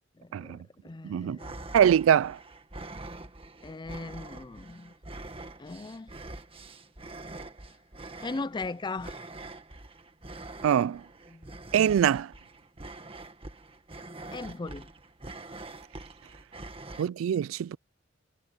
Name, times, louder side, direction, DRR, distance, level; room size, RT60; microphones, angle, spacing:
voice 1, 0.2-1.6 3.6-4.9 5.6-6.1 8.2-9.2 11.3-11.5 14.3-14.9, left 3 dB, 20° left, 0.4 m, -38 dB
voice 2, 1.0-1.4 1.7-2.4 10.6-11.0 11.7-12.3 17.0-17.8, right 9 dB, 85° right, 0.3 m, -23 dB
sound 1, 1.4-17.0, right 2 dB, 30° right, 1.6 m, -44 dB
head